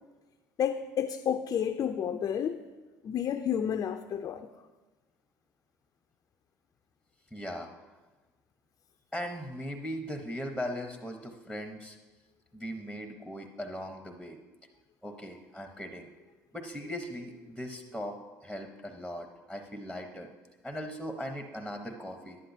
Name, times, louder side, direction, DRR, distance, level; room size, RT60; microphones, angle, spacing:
voice 1, 0.6-2.6 3.0-4.5, left 8 dB, 40° left, 0.4 m, -30 dB
voice 2, 7.3-7.7 9.1-12.0 12.5-14.4 15.0-16.1 16.5-18.2 18.4-20.3 20.6-22.4, equal, 5° right, 0.9 m, -39 dB
11.0 x 9.7 x 2.7 m
hypercardioid pair, 65°, 9 cm